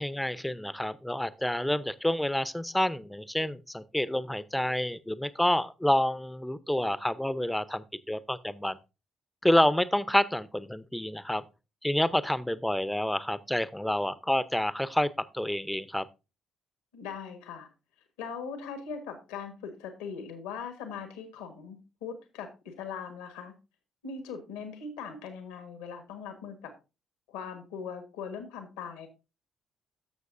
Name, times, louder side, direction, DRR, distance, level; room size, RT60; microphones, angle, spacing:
voice 1, 0.0-8.8 9.4-11.4 11.8-16.0, left 1 dB, 5° left, 0.7 m, -28 dB
voice 2, 16.9-17.7 18.2-23.5 24.0-26.7 27.3-29.1, left 6 dB, 80° left, 1.5 m, -40 dB
13.0 x 6.7 x 2.6 m
hypercardioid pair, 45°, 0 cm